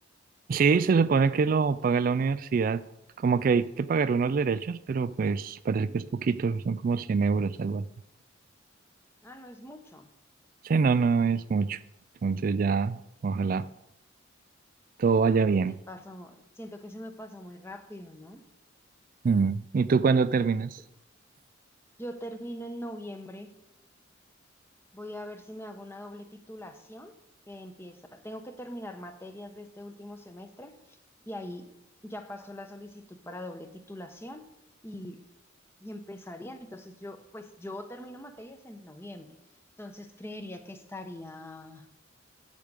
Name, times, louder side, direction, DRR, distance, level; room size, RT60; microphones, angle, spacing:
voice 1, 0.5-2.8 3.2-7.8 10.6-11.8 12.2-13.7 15.0-15.7 19.2-20.8, right 5 dB, 45° right, 14 dB, 0.3 m, -25 dB
voice 2, 9.2-10.1 15.7-18.4 22.0-23.5 24.9-27.1 27.5-31.0 31.3-31.7 32.0-34.4 34.8-35.2 35.8-39.3 39.8-41.9, left 1 dB, 15° left, 7 dB, 0.9 m, -42 dB
10.0 x 5.0 x 8.2 m, 0.84 s
head